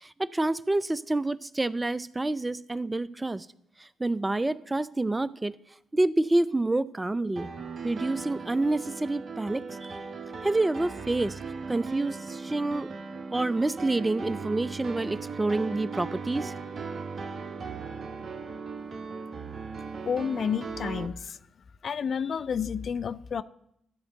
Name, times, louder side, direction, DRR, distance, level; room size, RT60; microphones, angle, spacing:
voice 1, 0.0-3.5 3.8-5.6 5.9-7.5 7.8-10.0 10.4-11.4 11.7-12.9 13.3-16.5, right 2 dB, 20° right, 19 dB, 0.4 m, -28 dB
Piano, 7.4-21.1, right 4 dB, 50° right, 0.8 m, -38 dB
voice 2, 20.0-21.4 21.8-23.4, left 7 dB, 55° left, 15 dB, 0.4 m, -30 dB
13.0 x 4.4 x 7.7 m, 0.76 s
hypercardioid pair, 45°, 0 cm